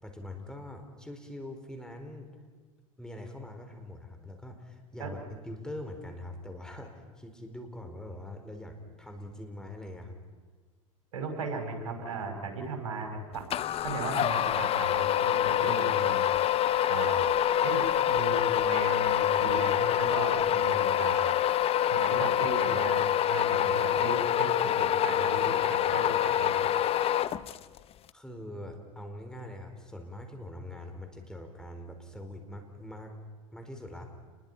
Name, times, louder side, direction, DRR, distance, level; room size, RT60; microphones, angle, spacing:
voice 1, 0.0-2.3 3.0-10.2 28.1-33.1 33.5-34.1, left 1 dB, 5° left, 4 dB, 4.5 m, -43 dB
voice 2, 11.1-13.5 13.8-16.3 16.9-17.2 17.6-21.4 21.9-26.6, right 3 dB, 75° right, 4 dB, 5.2 m, -36 dB
sound 1, 13.5-27.8, left 10 dB, 35° left, 0.7 m, -26 dB
29.0 x 21.5 x 5.6 m, 1.4 s
hypercardioid pair, 95°, 17 cm